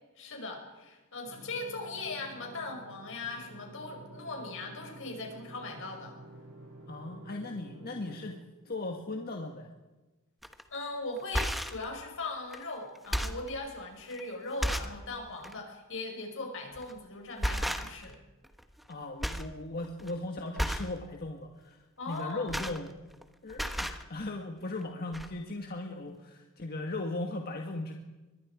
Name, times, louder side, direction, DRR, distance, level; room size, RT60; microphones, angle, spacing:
voice 1, 0.2-6.2 10.7-18.2 22.0-22.6, left 3 dB, 65° left, 3 dB, 5.4 m, -39 dB
sound 1, 1.3-8.3, right 2 dB, 70° right, 7.4 m, -50 dB
voice 2, 6.9-8.4 8.6-9.7 18.9-21.8 22.1-22.9 23.4-27.9, left 2 dB, 45° left, 2 dB, 1.6 m, -38 dB
sound 2, 10.4-10.6 11.2-11.8 12.5-12.6 13.0-13.5 14.1-14.2 14.6-15.0 15.4-15.6 16.7-17.0 17.4-18.1 18.4-18.9 19.2-19.5 19.8-20.1 20.6-21.0 22.1-23.2 23.5-24.0 24.8-24.9 25.1-25.3, equal, ahead, 1.1 m, -33 dB
24.5 x 21.5 x 5.0 m, 1.1 s
head